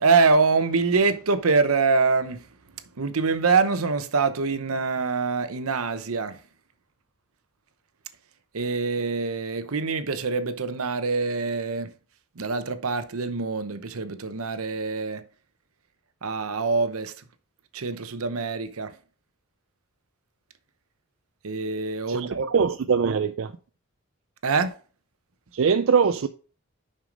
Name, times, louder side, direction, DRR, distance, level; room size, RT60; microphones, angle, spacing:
voice 1, 0.0-2.4 3.0-6.4 8.5-11.9 12.4-15.2 16.2-17.1 17.7-18.9 21.4-22.5 24.4-24.7, right 4 dB, 85° right, 0.8 m, -24 dB
voice 2, 22.1-23.5 25.5-26.3, right 6 dB, 65° right, 0.4 m, -22 dB
6.1 x 5.6 x 5.1 m
head